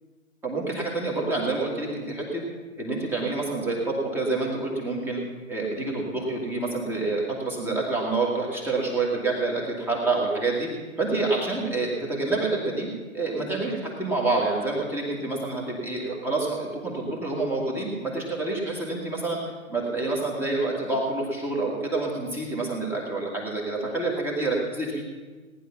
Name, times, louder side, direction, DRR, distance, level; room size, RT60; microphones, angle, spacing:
voice 1, 0.4-2.4 2.8-5.2 5.5-10.7 11.0-19.4 19.7-25.0, right 3 dB, 5° right, -1 dB, 1.8 m, -27 dB
18.0 x 10.5 x 5.8 m, 1.4 s
hypercardioid pair, 150°, 42 cm